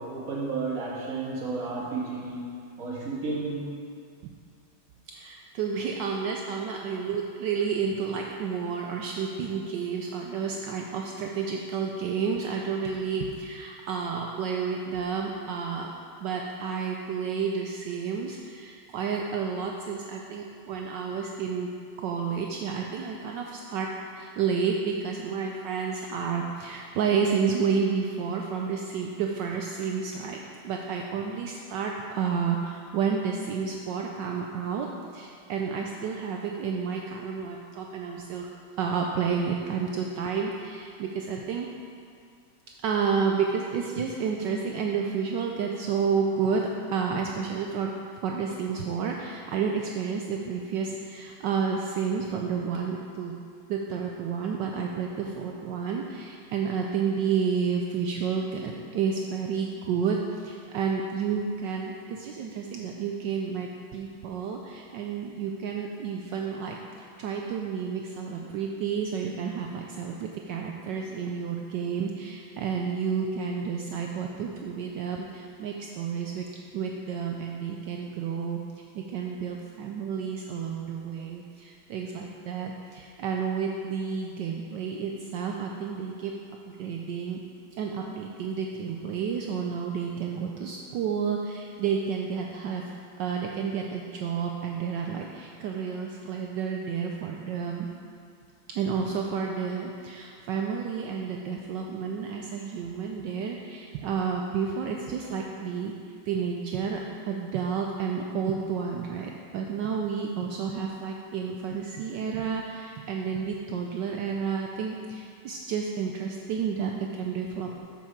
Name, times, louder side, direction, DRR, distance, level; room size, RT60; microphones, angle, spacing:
voice 1, 0.0-2.5 2.8-3.7, right 3 dB, 40° right, -5 dB, 1.8 m, -32 dB
voice 2, 5.1-15.9 16.2-21.7 22.0-38.5 38.8-41.7 42.8-47.9 48.2-53.3 53.7-76.5 76.7-78.6 78.9-86.3 86.7-87.4 87.7-92.8 93.2-97.9 98.7-105.9 106.3-117.8, right 6 dB, 80° right, 1 dB, 1.0 m, -30 dB
7.3 x 6.9 x 4.5 m, 2.3 s
omnidirectional pair, 2.4 m